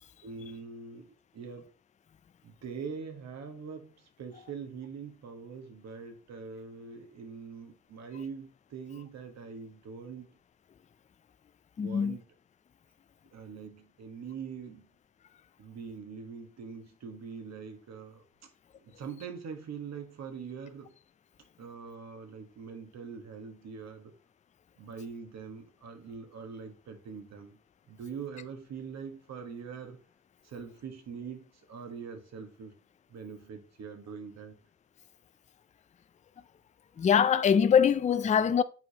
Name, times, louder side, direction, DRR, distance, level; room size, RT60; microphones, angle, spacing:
voice 1, 0.2-1.7 2.4-10.3 11.8-12.2 13.3-14.9 15.6-18.2 18.7-20.9 21.6-24.1 24.8-27.6 27.9-30.0 30.4-32.8 33.1-34.5, right 6 dB, 60° right, 1.5 m, -43 dB
voice 2, 11.8-12.2 37.0-38.6, left 7 dB, 25° left, 0.4 m, -23 dB
7.7 x 4.9 x 2.9 m
cardioid pair, 90°, 30 cm